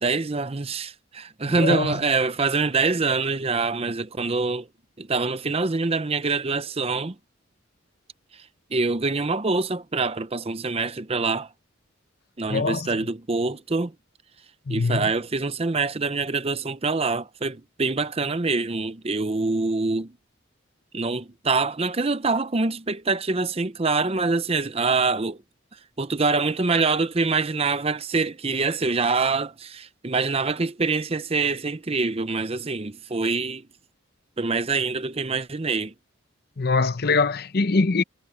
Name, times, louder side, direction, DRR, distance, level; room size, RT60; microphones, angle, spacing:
voice 1, 0.0-4.7 5.0-7.1 8.7-11.5 12.4-13.9 14.7-20.1 20.9-25.4 26.0-33.6 34.4-35.9, right 3 dB, 30° right, 0.7 m, -25 dB
voice 2, 1.5-2.0 12.5-12.9 14.7-15.0 36.6-38.0, left 3 dB, 50° left, 0.7 m, -23 dB
head